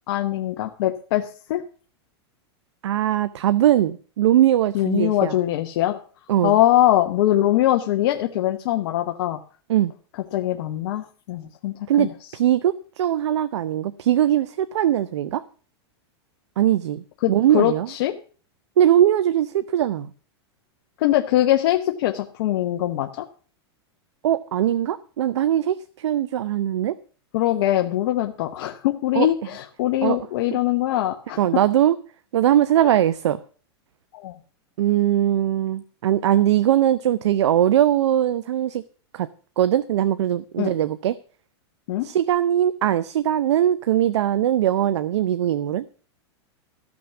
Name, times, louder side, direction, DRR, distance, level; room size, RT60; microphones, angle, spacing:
voice 1, 0.1-1.6 4.7-6.0 6.4-9.4 10.3-12.1 17.2-18.2 21.0-23.2 27.3-31.4 34.2-34.4 40.6-40.7 41.9-42.1, left 13 dB, 65° left, 4 dB, 0.9 m, -22 dB
voice 2, 2.8-5.3 6.3-6.6 9.7-9.9 11.9-12.1 12.3-15.4 16.6-17.9 18.8-20.1 24.2-27.0 29.1-29.3 30.0-30.2 31.4-32.0 32.3-33.4 34.8-38.8 39.1-39.3 39.6-41.1 42.0-45.9, right 11 dB, 85° right, 14 dB, 0.6 m, -20 dB
13.5 x 6.1 x 7.1 m, 0.41 s
supercardioid pair, 135°, 14 cm